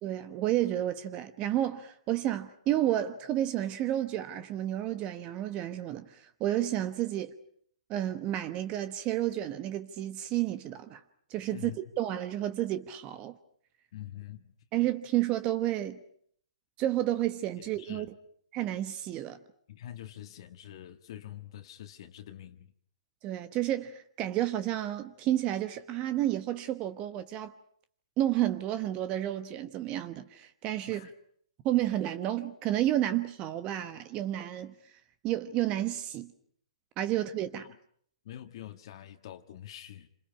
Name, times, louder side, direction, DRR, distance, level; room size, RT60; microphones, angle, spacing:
voice 1, 0.0-7.3 7.9-11.0 11.3-11.7 12.0-13.4 14.7-16.0 16.8-18.1 18.5-19.4 23.2-27.5 28.2-31.1 31.6-34.7 35.2-36.3 37.0-37.7, right 13 dB, 30° right, 1.2 m, -31 dB
voice 2, 13.9-14.5 17.6-18.1 19.7-22.7 30.9-31.1 37.6-37.8 38.2-40.1, left 12 dB, 55° left, 1.6 m, -45 dB
28.0 x 26.5 x 5.8 m
hypercardioid pair, 130°, 3 cm